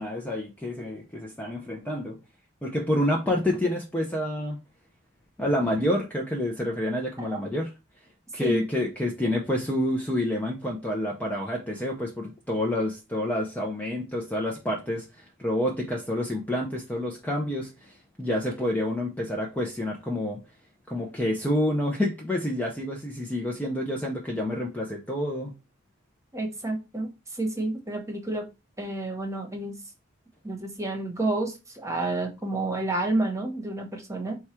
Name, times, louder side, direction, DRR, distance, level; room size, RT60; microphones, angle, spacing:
voice 1, 0.0-2.2 2.6-4.6 5.4-7.7 8.3-20.4 20.9-25.5, left 1 dB, 10° left, 0.6 m, -28 dB
voice 2, 26.3-28.5 28.8-29.8 30.4-34.4, right 2 dB, 15° right, 1.1 m, -30 dB
4.7 x 2.3 x 4.3 m
head